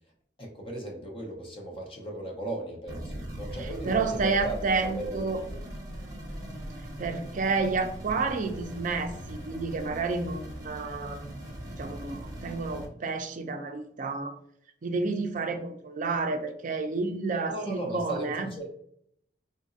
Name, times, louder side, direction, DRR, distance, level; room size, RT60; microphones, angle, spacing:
voice 1, 0.4-5.3 17.5-18.7, right 1 dB, 30° left, 0 dB, 0.7 m, -37 dB
sound 1, 2.9-12.9, right 1 dB, 20° right, 0.9 m, -40 dB
voice 2, 3.6-5.4 7.0-14.4 14.8-18.5, right 4 dB, 45° right, 6 dB, 0.4 m, -30 dB
3.8 x 2.6 x 2.4 m, 0.69 s
head